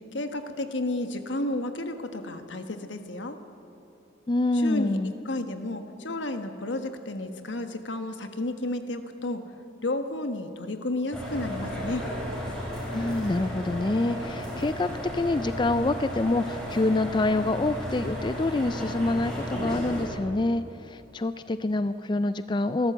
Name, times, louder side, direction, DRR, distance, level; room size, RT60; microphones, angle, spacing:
voice 1, 0.1-3.4 4.5-9.4 9.8-12.0, left 2 dB, 75° left, 7 dB, 1.4 m, -32 dB
voice 2, 4.3-5.1 12.9-22.9, left 2 dB, 25° left, 12 dB, 0.4 m, -26 dB
sound 1, 11.1-20.0, equal, 5° left, 5.6 m, -34 dB
26.0 x 13.0 x 8.0 m, 2.8 s
head